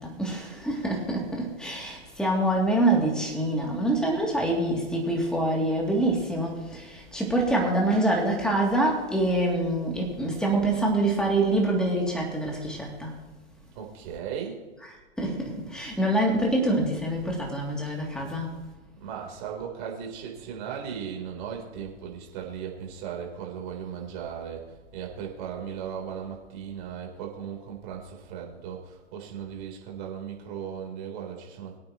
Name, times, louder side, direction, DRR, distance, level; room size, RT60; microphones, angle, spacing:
voice 1, 0.0-13.2 14.8-18.6, right 1 dB, ahead, -1 dB, 2.8 m, -26 dB
voice 2, 13.8-14.6 19.0-31.8, right 8 dB, 45° right, 0 dB, 3.8 m, -37 dB
23.0 x 8.7 x 3.1 m, 1.2 s
hypercardioid pair, 120°, 34 cm